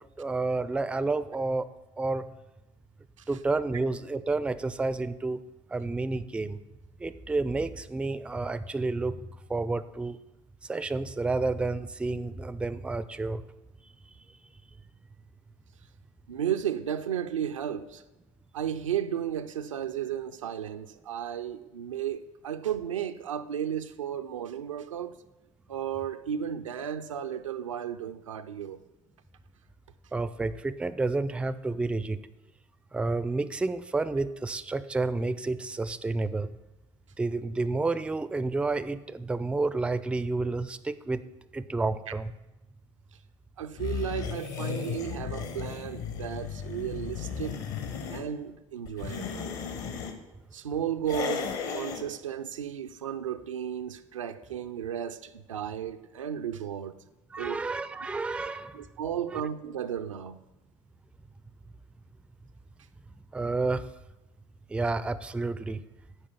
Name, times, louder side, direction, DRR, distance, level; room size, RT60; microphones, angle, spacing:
voice 1, 0.2-1.7 2.0-2.3 3.3-5.4 5.7-6.6 7.0-9.2 9.5-10.2 10.7-13.4 30.1-32.2 32.9-36.6 37.2-41.2 41.5-42.3 57.3-58.8 59.3-59.4 63.3-63.8 64.7-65.8, right 3 dB, 5° right, 0.4 m, -30 dB
voice 2, 16.3-18.0 18.5-25.2 25.7-28.8 43.6-47.6 48.1-49.5 50.5-57.0 57.4-57.6 58.7-60.4, right 9 dB, 80° right, 0.4 m, -34 dB
sound 1, 43.8-48.2 48.9-50.1 51.0-52.0, left 7 dB, 55° left, 1.1 m, -35 dB
8.8 x 5.0 x 6.9 m
figure-of-eight pair, 60°, 16 cm